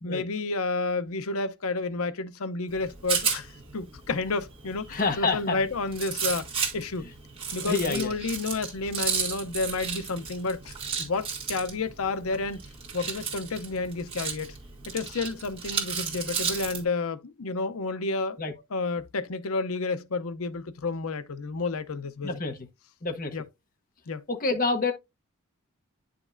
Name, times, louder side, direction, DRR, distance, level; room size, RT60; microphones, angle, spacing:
voice 1, 0.0-6.5 6.7-7.1 7.5-12.6 12.9-14.5 14.9-18.4 18.7-22.3 23.3-23.4 24.1-24.2, left 3 dB, 75° left, 0.7 m, -30 dB
Rattle, 2.7-16.8, right 6 dB, 25° right, 2.1 m, -34 dB
voice 2, 4.9-5.6 7.6-8.1 18.4-18.5 22.2-22.7 23.0-23.4 24.3-24.9, left 3 dB, 40° left, 0.9 m, -28 dB
9.8 x 5.1 x 2.5 m
head